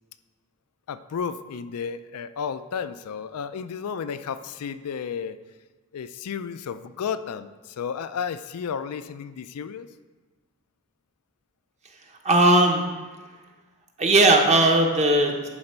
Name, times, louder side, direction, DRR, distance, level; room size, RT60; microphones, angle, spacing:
voice 1, 0.9-5.4 5.9-9.9, left 6 dB, 85° left, 11 dB, 0.4 m, -32 dB
voice 2, 12.2-12.8 14.0-15.5, right 2 dB, 30° right, 2 dB, 0.9 m, -18 dB
10.5 x 4.4 x 4.4 m, 1.3 s
head